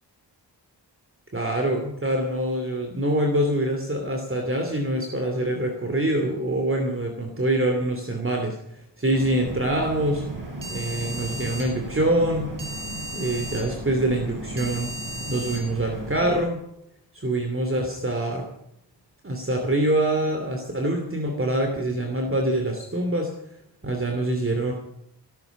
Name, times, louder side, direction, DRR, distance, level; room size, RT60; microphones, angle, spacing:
voice 1, 1.3-10.2 10.7-12.6 13.1-14.9 15.3-16.6 17.1-18.5 19.2-23.3 23.8-24.7, right 1 dB, 30° right, 3 dB, 2.9 m, -25 dB
sound 1, 9.1-16.4, right 1 dB, 50° right, 5.9 m, -34 dB
16.5 x 13.5 x 6.1 m, 0.77 s
wide cardioid pair, 85°, 42 cm